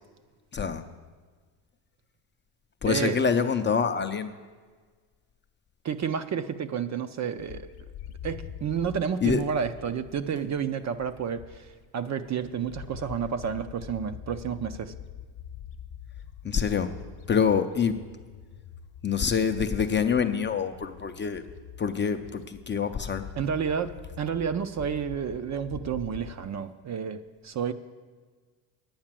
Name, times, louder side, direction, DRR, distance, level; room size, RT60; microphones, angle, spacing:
voice 1, 0.5-0.8 2.8-4.3 9.2-9.4 16.4-16.9 17.3-18.0 19.0-21.4 21.8-23.3, left 6 dB, 25° left, 7 dB, 0.5 m, -26 dB
voice 2, 5.8-7.7 8.2-11.7 11.9-14.9 23.4-23.9 24.2-27.2 27.4-27.7, right 7 dB, 35° right, 10 dB, 0.5 m, -30 dB
Bird, 7.4-11.9 12.2-26.4, left 9 dB, 55° left, 1.0 m, -45 dB
9.7 x 8.8 x 7.4 m, 1.5 s
cardioid pair, 115°, 47 cm